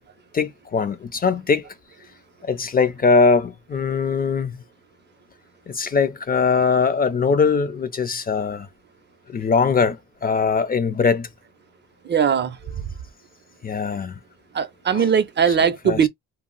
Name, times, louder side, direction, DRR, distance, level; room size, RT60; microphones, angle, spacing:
voice 1, 0.3-1.6 2.4-4.6 5.7-8.7 9.3-11.3 13.6-14.2 14.9-15.1 15.6-16.1, left 5 dB, 30° left, 0.5 m, -21 dB
voice 2, 12.1-12.6 14.5-16.1, right 7 dB, 35° right, 0.5 m, -19 dB
2.4 x 2.0 x 3.8 m
cardioid pair, 90°, 30 cm